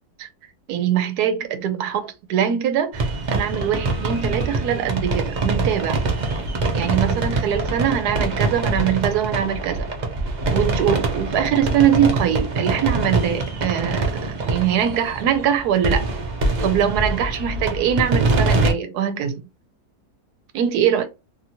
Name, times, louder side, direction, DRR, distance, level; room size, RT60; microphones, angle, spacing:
voice 1, 0.7-6.0 6.7-9.9 10.5-16.0 16.6-19.4 20.5-21.1, right 9 dB, 85° right, 1.1 m, -22 dB
sound 1, 2.9-18.7, right 3 dB, 50° right, 0.5 m, -24 dB
2.9 x 2.7 x 2.6 m
omnidirectional pair, 1.7 m